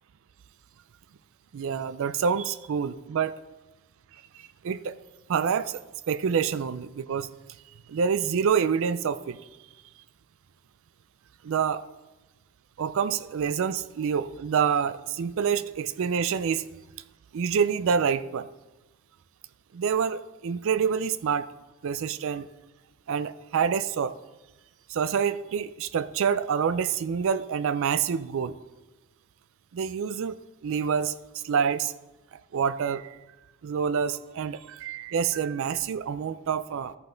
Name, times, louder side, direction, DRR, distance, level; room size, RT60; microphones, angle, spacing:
voice 1, 1.5-3.3 4.4-5.0 5.3-5.8 6.1-7.3 7.9-9.4 11.4-11.8 12.8-16.7 17.3-18.5 19.7-21.5 21.8-22.5 23.1-24.2 24.9-28.6 29.7-30.4 30.6-31.1 31.4-31.9 32.5-33.2 33.6-37.0, right 7 dB, 60° right, 15 dB, 0.4 m, -27 dB
13.5 x 5.8 x 3.8 m, 1.1 s
head